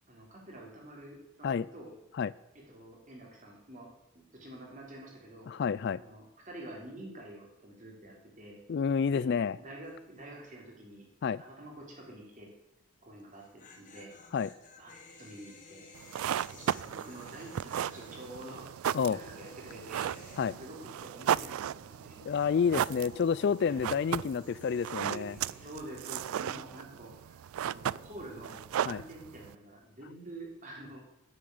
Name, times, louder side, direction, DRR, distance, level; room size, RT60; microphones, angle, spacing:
voice 1, 0.1-1.9 2.7-3.9 4.1-5.5 6.0-8.6 9.1-9.2 9.6-11.1 11.4-12.5 13.0-14.1 14.8-14.9 15.2-15.9 16.5-22.2 23.7-23.9 25.1-31.0, right 1 dB, 40° right, -2 dB, 3.8 m, -48 dB
voice 2, 5.5-6.0 8.7-9.6 11.2-11.4 14.3-14.5 18.9-19.2 20.4-20.5 22.2-25.3 28.8-29.0, left 6 dB, 55° left, 19 dB, 0.3 m, -29 dB
sound 1, 9.8-10.2 10.4-10.5 13.2-21.6 21.8-25.8, left 3 dB, 40° left, 1.6 m, -55 dB
sound 2, 16.0-29.6, right 10 dB, 90° right, 0.3 m, -36 dB
9.7 x 7.6 x 8.6 m, 0.88 s
head